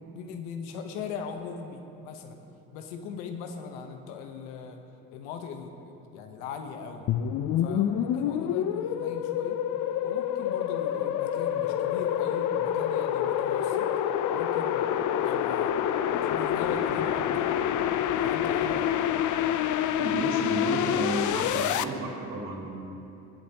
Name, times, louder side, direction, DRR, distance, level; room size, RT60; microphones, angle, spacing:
voice 1, 0.1-2.4 2.7-4.8 5.1-7.1 7.6-9.6 10.0-13.9 14.3-15.9 16.2-17.4 18.1-18.9, left 5 dB, 85° left, 5 dB, 1.2 m, -39 dB
sound 1, 7.1-21.8, left 10 dB, 60° left, 0.7 m, -27 dB
voice 2, 20.0-22.7, right 2 dB, 65° right, -4 dB, 3.3 m, -32 dB
19.5 x 11.5 x 3.0 m, 2.8 s
hypercardioid pair, 60°, 34 cm